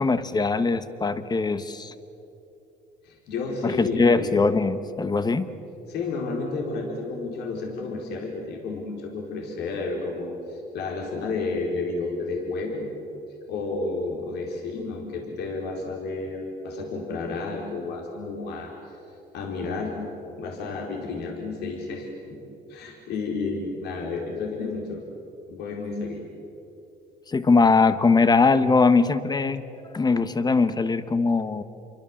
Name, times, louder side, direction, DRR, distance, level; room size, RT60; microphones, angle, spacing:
voice 1, 0.0-1.9 3.6-5.5 27.3-29.6 29.9-31.6, left 4 dB, 25° left, 12 dB, 1.4 m, -21 dB
voice 2, 3.0-4.5 5.9-12.8 13.5-18.7 19.3-20.0 20.4-22.4 22.7-25.0 25.5-26.2, left 3 dB, 80° left, 0 dB, 4.5 m, -31 dB
28.5 x 24.0 x 7.3 m, 3.0 s
cardioid pair, 110°, 17 cm